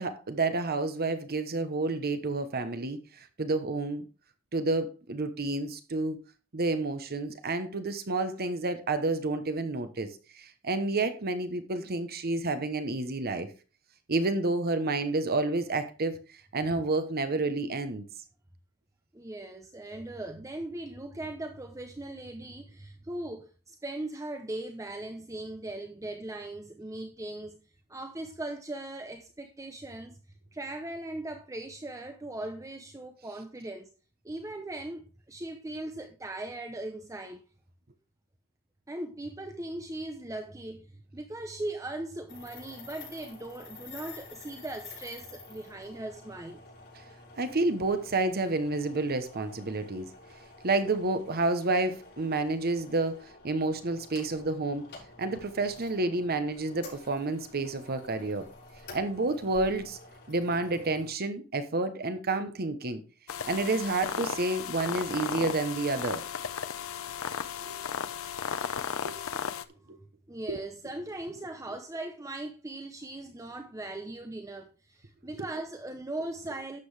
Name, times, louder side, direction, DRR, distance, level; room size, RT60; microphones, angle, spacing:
voice 1, 0.0-3.0 3.4-4.0 4.5-6.2 6.5-10.1 10.3-13.5 14.1-16.1 16.5-18.0 47.4-50.1 50.6-54.9 55.2-58.5 58.9-60.0 60.3-63.0 63.4-66.2 67.6-67.8 69.0-69.1 69.9-70.0 70.5-70.6, right 2 dB, 45° right, 1.0 m, -29 dB
voice 2, 19.1-27.6 27.9-30.2 30.5-33.9 34.2-37.4 38.9-40.9 41.1-46.6 70.3-76.8, right 2 dB, 15° right, 0.8 m, -39 dB
sound 1, 42.3-61.1, left 3 dB, 50° left, 6.5 m, -50 dB
sound 2, 63.3-69.6, left 7 dB, 70° left, 0.8 m, -35 dB
12.0 x 7.7 x 3.3 m
head